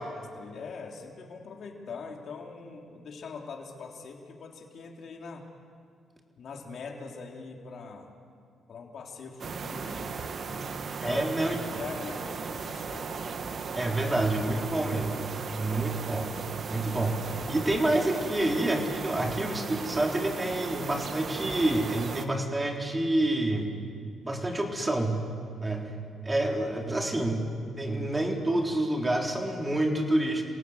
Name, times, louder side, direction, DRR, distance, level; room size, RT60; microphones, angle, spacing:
voice 1, 0.1-5.5 6.4-8.1 8.7-10.1 10.4-10.7 11.0-11.3 11.6-13.1, left 5 dB, 60° left, 1 dB, 3.5 m, -42 dB
sound 1, 9.4-22.3, right 5 dB, 50° right, 1.6 m, -37 dB
voice 2, 11.0-11.8 13.7-15.3 15.5-16.3 16.7-17.2 17.5-23.7 24.2-25.2 25.6-25.9 26.2-27.5 27.8-30.4, right 1 dB, 15° right, 1 dB, 3.8 m, -28 dB
28.0 x 17.5 x 8.1 m, 2.3 s
cardioid pair, 90°, 0 cm